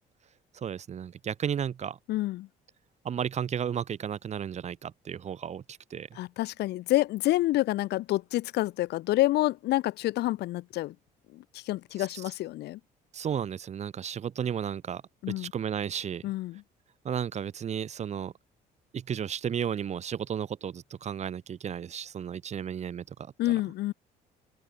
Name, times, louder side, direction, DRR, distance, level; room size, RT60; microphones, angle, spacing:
voice 1, 0.5-2.0 3.0-6.1 12.0-12.1 13.1-15.0 15.3-16.2 17.0-18.3 18.9-23.3, right 8 dB, 40° right, 1.4 m, -33 dB
voice 2, 2.1-2.5 6.2-11.0 11.3-12.8 15.2-15.5 16.2-16.6 23.4-23.9, left 16 dB, 80° left, 2.1 m, -28 dB
open air
cardioid pair, 110°, 17 cm